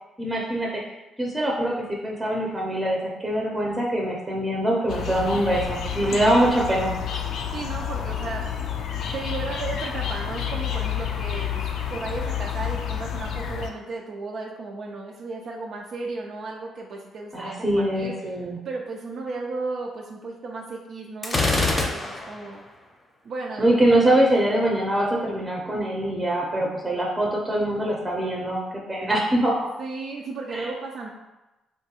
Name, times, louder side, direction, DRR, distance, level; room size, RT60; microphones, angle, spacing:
voice 1, 0.2-6.9 17.3-18.6 23.6-29.7 30.5-30.7, right 1 dB, 15° right, -3 dB, 0.6 m, -23 dB
sound 1, 4.9-13.7, left 8 dB, 75° left, 0.3 m, -30 dB
voice 2, 7.5-8.4 9.1-18.2 18.6-22.6 23.2-23.7 29.8-31.1, right 3 dB, 60° right, 0 dB, 0.3 m, -34 dB
Gunshot gunfire, 21.2-22.5, left 2 dB, 25° left, 0.6 m, -24 dB
3.1 x 2.3 x 2.8 m, 1.0 s
cardioid pair, 90°, 0 cm